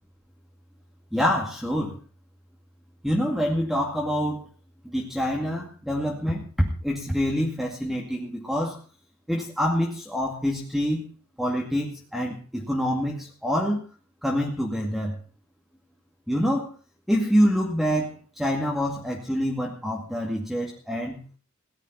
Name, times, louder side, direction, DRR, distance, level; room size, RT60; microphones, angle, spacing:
voice 1, 1.1-2.0 3.0-4.5 4.8-6.4 6.8-8.8 9.3-11.0 11.4-13.9 14.2-15.2 16.3-16.7 17.1-21.2, equal, ahead, -1 dB, 2.2 m, -26 dB
17.5 x 11.5 x 5.8 m, 0.39 s
head